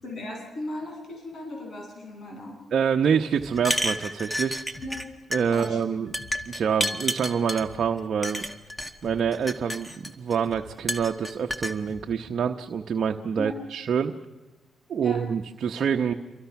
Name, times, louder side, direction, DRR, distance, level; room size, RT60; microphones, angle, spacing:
voice 1, 0.0-2.6 4.8-5.0 5.5-6.1 13.4-13.6 15.0-15.2, left 1 dB, 55° left, 1 dB, 8.0 m, -37 dB
voice 2, 2.7-4.6 5.3-6.1 6.5-8.4 9.0-14.1 14.9-16.1, right 7 dB, 60° right, 4 dB, 0.9 m, -26 dB
sound 1, 3.3-3.5 4.7-4.9 6.2-6.4 7.6-7.8 9.0-9.2 10.4-10.6 11.9-12.1, left 3 dB, 30° left, 5.7 m, -46 dB
sound 2, 3.6-5.1 5.3-5.7 6.1-7.6 8.2-8.9 9.3-10.3 10.9-11.7, equal, 5° left, 1.8 m, -30 dB
28.0 x 23.5 x 5.9 m, 1.2 s
cardioid pair, 70°, 0 cm